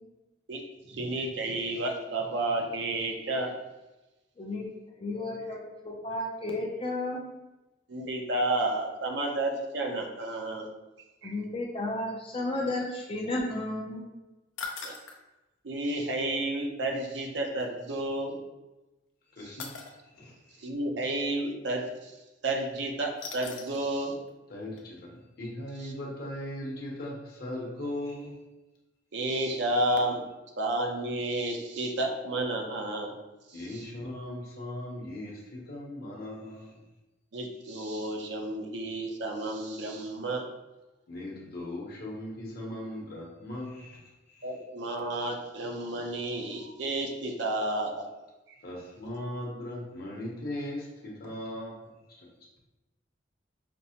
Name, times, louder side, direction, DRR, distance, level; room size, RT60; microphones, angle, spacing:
voice 1, 0.9-3.5 7.9-10.7 11.2-11.3 14.8-15.0 15.6-18.4 19.4-19.6 20.6-22.1 22.4-24.1 25.8-25.9 29.1-30.2 30.6-33.1 33.5-33.9 37.3-40.4 44.4-48.1, right 2 dB, 65° right, 1 dB, 0.6 m, -31 dB
voice 2, 4.4-4.7 5.0-5.6 5.8-7.2 11.2-14.1, left 2 dB, 30° left, 0 dB, 0.4 m, -33 dB
sound 1, 14.6-15.2 17.6-17.7 19.6-19.9 23.2-23.9 24.3-24.4 24.8-24.9, left 5 dB, 80° left, 0.5 m, -40 dB
voice 3, 19.4-19.8 20.1-20.3 24.5-28.4 33.5-36.7 41.1-44.0 44.3-44.4 48.6-51.8, left 1 dB, 50° left, -3 dB, 0.9 m, -38 dB
5.2 x 2.1 x 2.8 m, 1.1 s
head